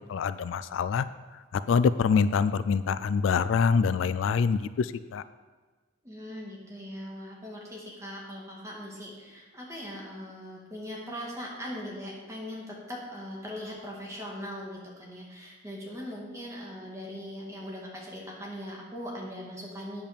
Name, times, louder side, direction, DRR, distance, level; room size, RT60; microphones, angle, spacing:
voice 1, 0.1-1.1 1.7-5.2, left 5 dB, 75° left, 14 dB, 0.3 m, -25 dB
voice 2, 6.0-20.0, equal, 15° right, -3 dB, 2.0 m, -40 dB
8.8 x 5.4 x 6.6 m, 1.3 s
head